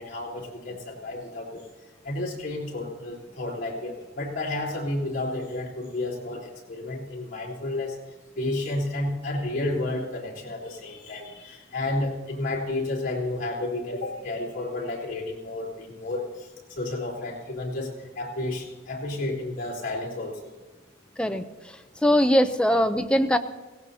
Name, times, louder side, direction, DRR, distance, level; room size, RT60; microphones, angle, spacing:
voice 1, 0.0-1.6 2.0-7.9 8.4-20.4, left 2 dB, 45° left, -5 dB, 3.7 m, -31 dB
voice 2, 21.2-23.4, equal, 5° left, 7 dB, 0.5 m, -22 dB
18.0 x 17.5 x 2.8 m, 1.2 s
head